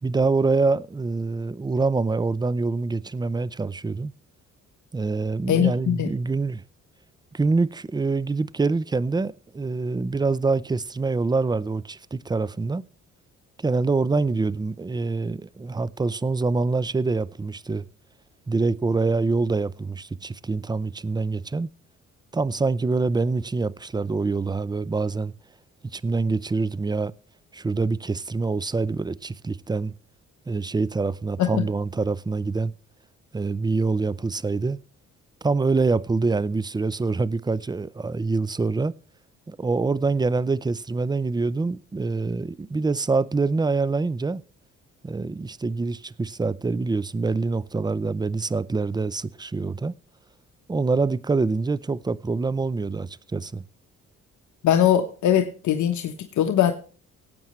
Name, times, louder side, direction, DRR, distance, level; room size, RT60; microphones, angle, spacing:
voice 1, 0.0-4.1 4.9-6.6 7.3-12.8 13.6-17.9 18.5-21.7 22.3-25.3 25.9-27.1 27.5-29.9 30.5-32.7 33.3-34.8 35.4-38.9 39.5-44.4 45.0-49.9 50.7-53.6, right 3 dB, 15° right, 0.5 m, -25 dB
voice 2, 5.5-6.1 31.4-31.7 54.6-56.7, left 10 dB, 75° left, 1.2 m, -21 dB
18.0 x 8.7 x 3.1 m
cardioid pair, 90°, 30 cm